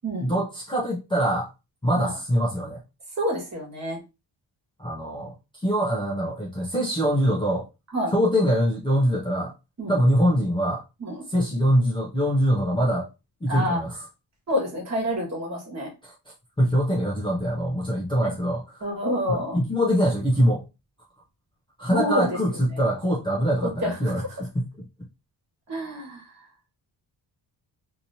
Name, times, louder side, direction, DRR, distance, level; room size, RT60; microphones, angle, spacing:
voice 1, 0.2-1.5 1.8-2.8 4.8-5.3 5.6-7.7 8.1-9.5 9.9-10.8 11.3-13.1 13.4-14.1 16.0-16.1 16.6-18.8 19.3-20.6 21.8-24.7, equal, 10° left, 0.6 m, -23 dB
voice 2, 3.2-4.0 7.9-8.1 9.8-9.9 11.0-11.2 13.5-13.8 14.5-15.9 18.2-18.3 18.8-19.6 21.9-22.3 22.7-22.8 23.8-24.2 25.7-26.3, equal, 35° right, 1.5 m, -28 dB
3.0 x 2.8 x 2.7 m
wide cardioid pair, 180°, 44 cm